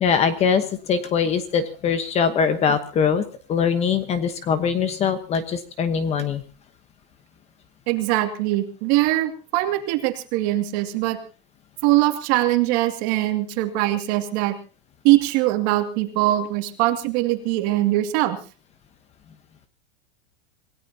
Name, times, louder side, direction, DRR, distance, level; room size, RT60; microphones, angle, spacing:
voice 1, 0.0-6.4, left 6 dB, 20° left, 10 dB, 1.1 m, -22 dB
voice 2, 7.9-11.2 11.8-14.6 15.0-18.4, right 16 dB, 45° right, 6 dB, 2.5 m, -22 dB
27.0 x 17.5 x 2.9 m, 0.35 s
supercardioid pair, 160°, 30 cm